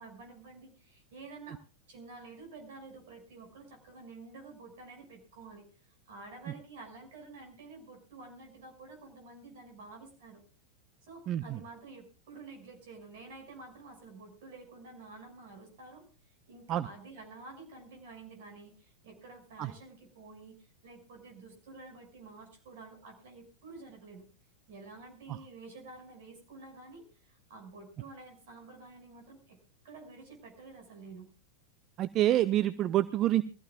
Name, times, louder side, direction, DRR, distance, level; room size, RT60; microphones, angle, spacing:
voice 1, 0.0-1.6 1.9-5.6 6.1-10.4 11.0-24.3 24.7-29.6 29.8-31.3, right 3 dB, 55° right, 4 dB, 6.0 m, -50 dB
voice 2, 11.3-11.6 16.7-16.9 19.6-19.7 32.0-33.4, right 13 dB, 35° right, 15 dB, 0.6 m, -27 dB
23.0 x 15.0 x 2.4 m, 0.36 s
figure-of-eight pair, 90°, 0 cm